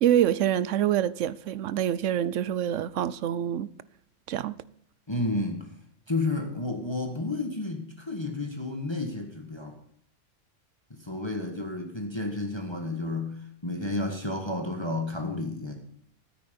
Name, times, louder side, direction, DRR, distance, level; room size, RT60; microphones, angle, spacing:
voice 1, 0.0-3.7 4.3-4.5, right 11 dB, 75° right, 1.0 m, -26 dB
voice 2, 5.1-5.7 6.1-9.8 10.9-15.8, left 2 dB, 20° left, 1.4 m, -31 dB
13.5 x 9.2 x 5.2 m
omnidirectional pair, 1.3 m